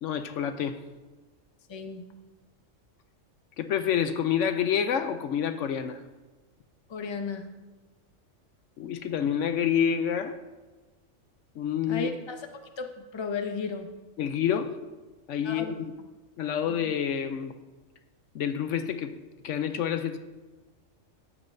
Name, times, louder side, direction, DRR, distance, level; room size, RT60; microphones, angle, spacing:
voice 1, 0.0-0.8 3.6-6.0 8.8-10.4 11.6-12.1 14.2-14.8 15.3-15.9 16.4-17.6 18.3-20.2, left 8 dB, 75° left, 9 dB, 0.9 m, -28 dB
voice 2, 1.7-2.1 6.9-7.5 11.9-12.4 12.8-13.9 15.4-15.7 16.7-16.8, left 4 dB, 25° left, 5 dB, 0.6 m, -34 dB
14.0 x 9.4 x 2.6 m, 1.2 s
omnidirectional pair, 1.3 m